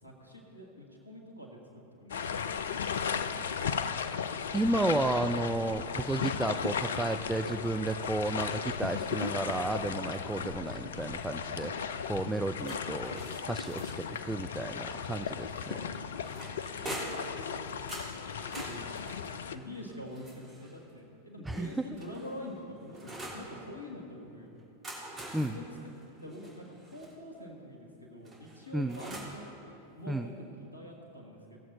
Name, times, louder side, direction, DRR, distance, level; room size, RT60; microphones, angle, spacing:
voice 1, 0.0-1.6 2.0-2.9 3.1-3.9 18.4-18.9 19.5-24.5 25.4-25.9 26.2-29.5 29.9-31.6, left 1 dB, 85° left, -1 dB, 1.6 m, -46 dB
sound 1, 2.1-19.6, left 6 dB, 65° left, 0.4 m, -36 dB
voice 2, 4.5-15.9 21.5-21.8 25.3-25.6 28.7-29.0 30.1-30.3, right 2 dB, 5° right, 7 dB, 0.4 m, -32 dB
sound 2, 12.6-14.2 15.6-17.3 17.9-20.8 21.6-23.5 24.6-27.1 28.3-29.4, right 1 dB, 25° right, 3.0 m, -45 dB
18.0 x 7.5 x 4.1 m, 2.9 s
figure-of-eight pair, 90°, 0 cm